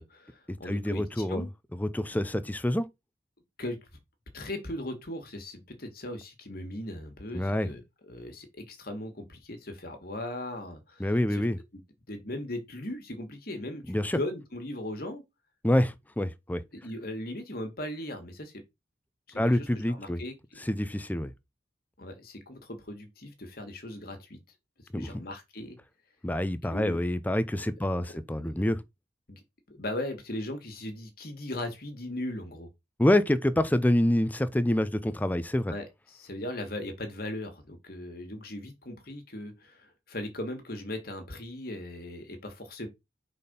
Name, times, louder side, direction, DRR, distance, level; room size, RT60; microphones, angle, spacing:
voice 1, 0.0-1.5 3.6-3.8 4.3-7.8 8.1-11.4 12.1-15.2 16.7-18.6 19.3-20.6 22.0-24.4 24.9-25.8 26.7-27.0 27.6-28.2 28.4-28.7 29.3-29.4 29.7-32.7 35.7-42.9, left 1 dB, 55° left, 1.7 m, -38 dB
voice 2, 0.7-1.4 1.8-2.9 7.3-7.7 11.0-11.6 13.9-14.2 15.6-16.6 19.4-20.2 20.7-21.3 24.9-25.2 26.2-28.8 33.0-35.7, left 1 dB, 10° left, 0.5 m, -26 dB
5.2 x 4.2 x 5.4 m
head